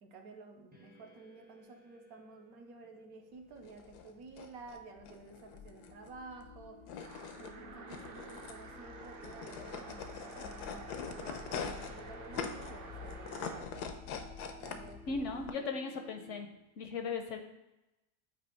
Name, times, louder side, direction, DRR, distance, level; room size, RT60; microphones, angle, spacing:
voice 1, 0.0-6.8 7.4-13.9 14.6-15.8, right 3 dB, 70° right, 4 dB, 1.2 m, -52 dB
sound 1, 0.7-16.6, right 1 dB, 10° right, 0.5 m, -59 dB
sound 2, 3.6-15.5, left 6 dB, 85° left, 1.2 m, -44 dB
sound 3, 7.0-13.7, right 4 dB, 50° right, 0.6 m, -50 dB
voice 2, 15.1-16.5 16.8-17.4, left 4 dB, 65° left, 5 dB, 0.8 m, -37 dB
8.5 x 2.9 x 4.3 m, 0.97 s
omnidirectional pair, 1.7 m